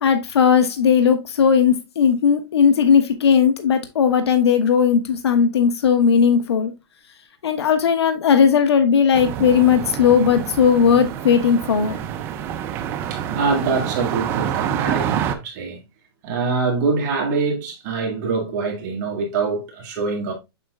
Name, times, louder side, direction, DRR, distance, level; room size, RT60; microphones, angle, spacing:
voice 1, 0.0-6.7 7.4-12.0, left 7 dB, 80° left, 1.2 m, -17 dB
sound 1, 9.1-15.3, right 9 dB, 15° right, 0.4 m, -27 dB
voice 2, 13.1-15.8 16.2-20.3, right 4 dB, 35° right, 1.9 m, -24 dB
7.4 x 5.5 x 2.4 m
hypercardioid pair, 160°, 14 cm